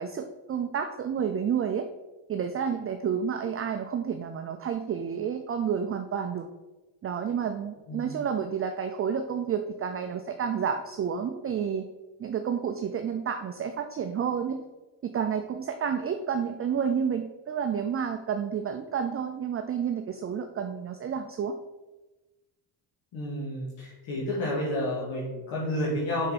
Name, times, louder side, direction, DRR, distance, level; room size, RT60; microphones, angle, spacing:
voice 1, 0.0-1.9 2.3-6.5 7.0-11.9 12.2-14.6 15.0-21.6, right 7 dB, 30° right, 6 dB, 0.4 m, -30 dB
voice 2, 23.1-26.3, left 1 dB, 80° left, -7 dB, 2.3 m, -30 dB
6.4 x 5.8 x 4.1 m, 1.1 s
cardioid pair, 125°, 47 cm